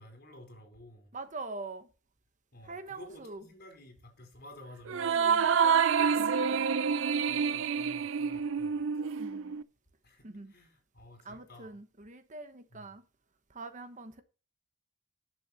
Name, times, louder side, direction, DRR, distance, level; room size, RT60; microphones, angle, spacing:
voice 1, 0.0-1.1 2.5-5.2 7.3-9.0 10.0-11.7 12.7-12.9, left 1 dB, 50° left, 4.5 m, -53 dB
voice 2, 1.1-1.9 2.6-3.4 4.9-6.3 9.2-9.6 10.2-10.5 11.2-13.0 13.5-14.2, right 3 dB, 40° right, 1.1 m, -44 dB
sound 1, 4.9-9.6, right 6 dB, 65° right, 0.5 m, -27 dB
10.5 x 7.0 x 4.3 m
head